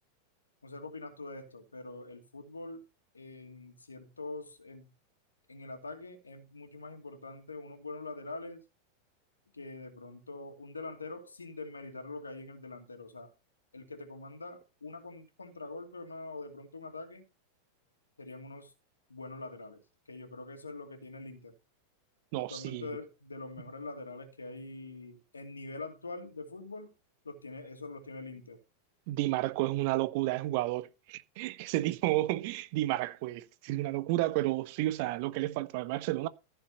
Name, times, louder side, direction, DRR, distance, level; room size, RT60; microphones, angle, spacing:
voice 1, 0.6-2.8 3.1-4.9 5.5-8.6 9.5-13.3 13.7-17.2 18.2-18.7 19.1-19.8 20.1-21.5 22.3-26.9 27.2-28.6, left 3 dB, 75° left, 2.6 m, -44 dB
voice 2, 22.3-22.9 29.1-36.3, right 17 dB, 45° right, 0.7 m, -31 dB
15.0 x 6.9 x 4.2 m
figure-of-eight pair, 90°, 0 cm